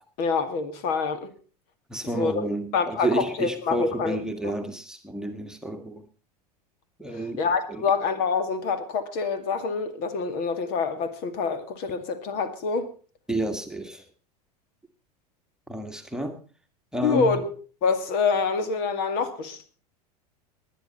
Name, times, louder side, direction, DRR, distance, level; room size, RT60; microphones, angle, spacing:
voice 1, 0.2-1.3 2.1-2.4 2.7-4.2 4.4-4.5 7.4-12.9 17.0-17.5 17.8-19.7, left 5 dB, 50° left, 2.1 m, -26 dB
voice 2, 1.9-6.1 7.0-7.4 7.7-7.9 13.3-14.1 15.7-16.4 16.9-17.4, right 1 dB, 5° right, 1.7 m, -30 dB
19.5 x 10.5 x 4.2 m
figure-of-eight pair, 85°, 21 cm